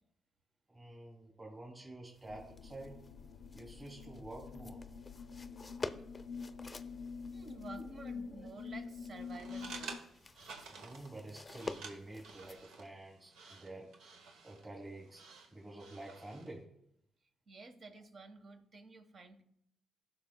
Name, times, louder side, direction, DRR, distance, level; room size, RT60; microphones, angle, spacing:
voice 1, 0.7-3.0 3.5-4.8 7.7-7.9 8.3-8.5 10.6-14.2 14.4-15.2 15.5-16.7, right 2 dB, 30° right, -4 dB, 2.6 m, -49 dB
sound 1, 2.1-12.6, left 3 dB, 30° left, 0.5 m, -50 dB
sound 2, 2.3-10.0, left 5 dB, 90° left, 0.5 m, -47 dB
voice 2, 6.9-10.0 17.5-19.4, right 3 dB, 55° right, 6 dB, 1.1 m, -52 dB
sound 3, 9.2-16.6, right 4 dB, 85° right, 0.9 m, -52 dB
14.5 x 5.9 x 2.2 m, 0.73 s
supercardioid pair, 60°, 0 cm